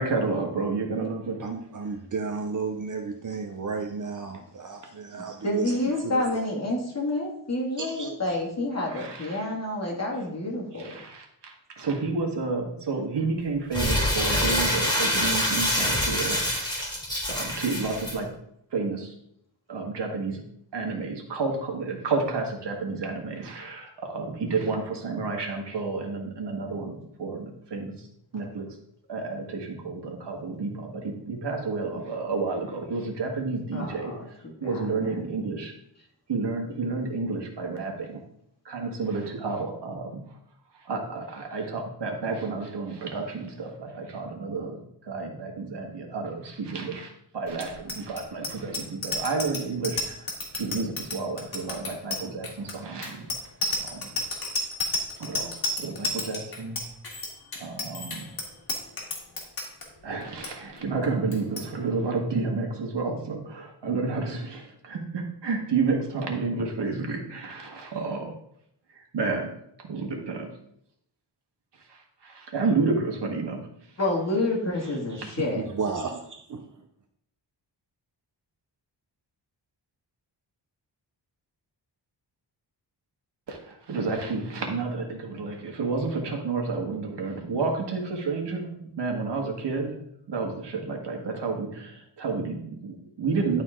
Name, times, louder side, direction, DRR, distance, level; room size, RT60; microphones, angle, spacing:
voice 1, 0.0-1.5 8.9-9.4 10.7-16.8 17.3-18.3 18.7-19.1 19.7-20.4 20.7-28.1 28.3-28.7 29.1-34.1 34.6-35.7 36.3-38.2 38.6-40.3 40.8-53.3 53.8-54.1 55.2-56.8 57.6-58.3 60.0-68.3 68.9-70.5 71.9-73.7 83.5-90.0 90.3-93.6, right 4 dB, 70° right, 1 dB, 1.7 m, -30 dB
voice 2, 1.4-5.8 6.0-6.2 7.8-8.1 75.6-76.6, right 5 dB, 45° right, 5 dB, 0.7 m, -33 dB
voice 3, 5.1-11.0 33.7-35.3 74.0-75.7, left 1 dB, 35° left, -2 dB, 2.3 m, -29 dB
Crumpling crinkling, 13.7-18.1, left 1 dB, 10° left, 2.4 m, -26 dB
Bicycle bell, 47.5-59.8 60.2-60.5 60.8-61.1 61.3-61.7, left 2 dB, 55° left, 1.9 m, -31 dB
11.0 x 4.1 x 3.7 m, 0.73 s
wide cardioid pair, 115°, 43 cm